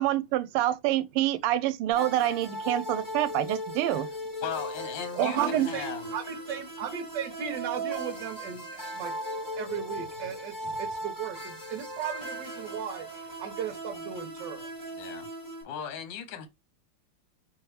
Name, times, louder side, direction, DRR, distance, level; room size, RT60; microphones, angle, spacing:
voice 1, 0.0-4.1 5.2-5.7, right 13 dB, 85° right, 1.5 m, -27 dB
sound 1, 1.9-15.6, right 1 dB, 10° left, 0.9 m, -37 dB
voice 2, 4.4-6.1 15.0-15.3 15.6-16.5, left 8 dB, 65° left, 1.3 m, -37 dB
voice 3, 5.1-5.9 6.1-9.2 9.6-14.7, right 8 dB, 60° right, 1.5 m, -36 dB
4.5 x 3.3 x 3.1 m
omnidirectional pair, 2.4 m